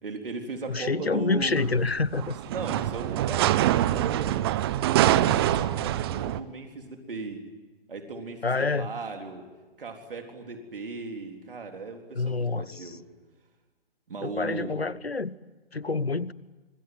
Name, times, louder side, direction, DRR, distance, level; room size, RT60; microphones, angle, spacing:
voice 1, 0.0-1.8 2.5-4.4 4.8-7.4 7.9-9.5 9.8-13.0 14.1-14.8, right 3 dB, 60° right, 3.9 m, -37 dB
voice 2, 0.7-2.4 8.4-8.9 12.1-13.0 14.2-15.3 15.7-16.3, left 3 dB, 85° left, 1.1 m, -27 dB
sound 1, 1.4-6.4, right 13 dB, 25° right, 0.8 m, -25 dB
25.0 x 25.0 x 9.4 m
figure-of-eight pair, 130°, 30 cm